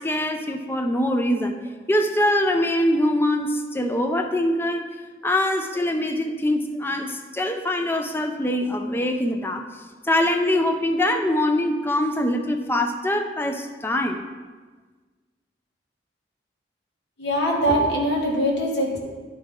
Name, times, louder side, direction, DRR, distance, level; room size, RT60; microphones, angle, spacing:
voice 1, 0.0-1.6 1.9-4.9 5.2-9.7 10.0-14.3, left 1 dB, 15° left, 6 dB, 0.5 m, -23 dB
voice 2, 17.2-19.0, equal, 75° left, -2 dB, 1.7 m, -22 dB
10.5 x 4.8 x 3.7 m, 1.4 s
head